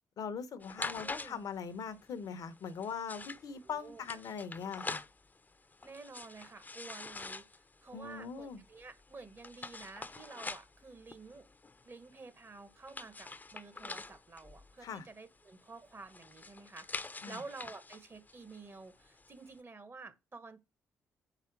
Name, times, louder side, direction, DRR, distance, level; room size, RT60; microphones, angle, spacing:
voice 1, 0.2-5.0 7.9-8.6 14.8-15.1 17.2-17.4, left 6 dB, 65° left, 0.9 m, -41 dB
sound 1, 0.6-19.6, left 3 dB, 25° left, 0.7 m, -47 dB
voice 2, 1.0-1.4 3.6-4.0 5.8-7.5 7.8-11.5 11.8-20.6, right 3 dB, 35° right, 1.4 m, -50 dB
4.9 x 4.2 x 5.9 m
hypercardioid pair, 50°, 7 cm